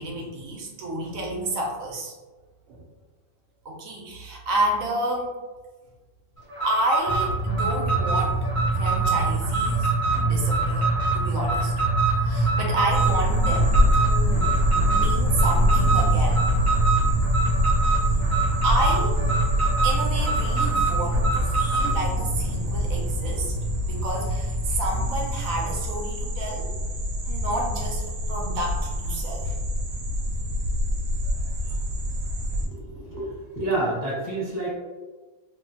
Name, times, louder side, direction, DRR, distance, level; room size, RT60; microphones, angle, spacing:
voice 1, 0.0-2.1 2.7-2.8 3.6-5.3 6.6-8.4 8.8-11.7 12.2-14.4 14.9-16.4 18.6-19.2 19.8-23.5 23.8-26.7 27.2-29.5 31.6-31.7 32.6-33.1, right 1 dB, 70° right, -1 dB, 0.9 m, -30 dB
Alarm, 6.5-22.0, right 4 dB, 25° right, 0.7 m, -26 dB
sound 1, 7.1-25.9, right 2 dB, 65° left, 0.7 m, -27 dB
sound 2, 12.9-32.7, left 1 dB, 85° right, 1.1 m, -26 dB
voice 2, 32.9-34.8, right 2 dB, 15° left, -10 dB, 0.8 m, -28 dB
3.0 x 2.1 x 2.7 m, 1.3 s
omnidirectional pair, 1.7 m